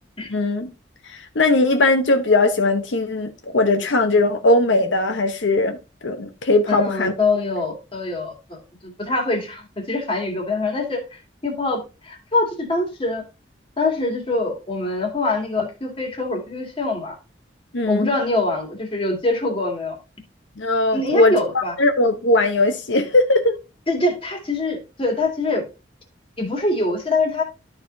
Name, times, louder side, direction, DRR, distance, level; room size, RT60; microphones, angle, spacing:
voice 1, 0.3-0.7 1.0-5.8 6.0-7.1 17.7-18.1 20.6-23.6, left 2 dB, 80° left, 0.9 m, -19 dB
voice 2, 6.7-13.2 13.8-17.2 17.9-20.0 20.9-21.7 23.9-25.6 26.4-27.4, left 2 dB, 30° left, 2.1 m, -24 dB
12.5 x 4.9 x 2.7 m
head